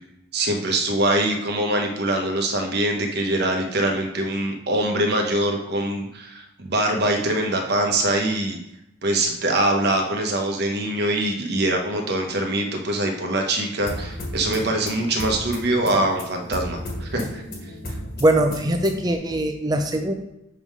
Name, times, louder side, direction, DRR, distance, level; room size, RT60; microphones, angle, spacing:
voice 1, 0.3-8.6 9.0-17.4, right 1 dB, 55° right, 3 dB, 1.0 m, -23 dB
sound 1, 13.9-19.2, left 1 dB, 50° left, 1.5 m, -34 dB
voice 2, 18.2-20.1, right 1 dB, 20° right, 5 dB, 0.5 m, -21 dB
6.9 x 3.6 x 4.8 m, 0.86 s
head